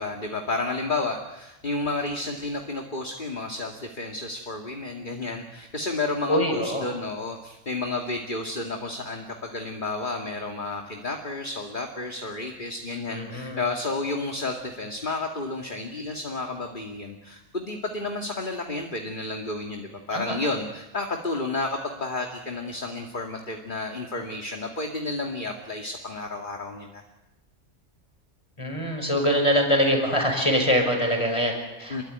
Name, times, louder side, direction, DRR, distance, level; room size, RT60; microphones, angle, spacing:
voice 1, 0.0-27.0 31.9-32.0, left 3 dB, 40° left, 2 dB, 2.4 m, -31 dB
voice 2, 6.3-6.8 13.1-13.6 20.1-20.4 28.6-32.0, equal, 25° left, 3 dB, 6.1 m, -24 dB
28.0 x 22.0 x 9.6 m, 0.99 s
omnidirectional pair, 1.3 m